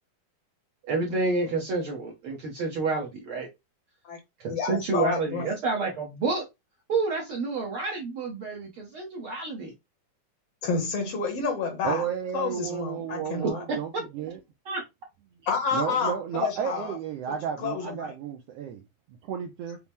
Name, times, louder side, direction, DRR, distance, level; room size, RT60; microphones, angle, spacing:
voice 1, 0.9-3.5 4.4-6.5 6.9-9.7 13.7-13.8 14.6-14.8, right 3 dB, 70° right, 1.3 m, -29 dB
voice 2, 4.5-5.5 10.6-12.0 12.3-13.6 15.5-17.0 17.3-18.1, left 5 dB, 65° left, 1.6 m, -29 dB
voice 3, 11.8-14.4 15.7-19.8, right 8 dB, 90° right, 1.4 m, -33 dB
5.7 x 2.0 x 3.4 m
omnidirectional pair, 3.5 m